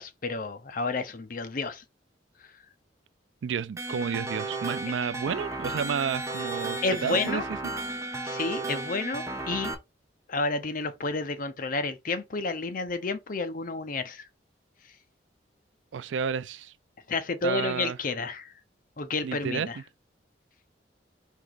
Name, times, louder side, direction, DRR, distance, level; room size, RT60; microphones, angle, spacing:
voice 1, 0.0-1.8 2.4-2.5 6.8-7.4 8.2-9.7 10.3-14.2 17.1-18.5 19.0-19.8, left 3 dB, 50° left, 0.6 m, -30 dB
voice 2, 3.4-7.7 15.9-16.7 17.4-18.0 19.2-19.7, right 7 dB, 80° right, 0.4 m, -31 dB
sound 1, 3.8-9.7, right 2 dB, 15° right, 0.7 m, -34 dB
4.6 x 2.9 x 3.8 m
head